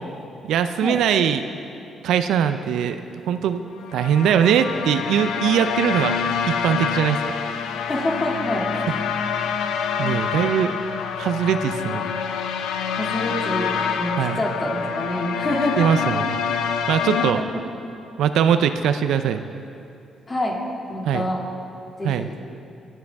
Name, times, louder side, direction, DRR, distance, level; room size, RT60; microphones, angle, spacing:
voice 1, 0.4-1.4 2.0-3.0 3.3-3.6 3.9-6.2 6.5-7.2 10.0-10.7 11.2-12.0 14.2-14.4 15.8-16.4 16.9-17.4 18.2-19.4 21.1-21.3 22.0-22.3, right 8 dB, 80° right, 9 dB, 0.5 m, -21 dB
sound 1, 3.8-17.3, left 7 dB, 85° left, 0.6 m, -26 dB
voice 2, 7.9-9.0 12.9-16.2 17.2-17.5 20.3-20.6 20.9-21.5 22.0-22.3, left 1 dB, 30° left, -2 dB, 2.3 m, -27 dB
21.0 x 7.7 x 3.5 m, 2.7 s
cardioid pair, 90°, 0 cm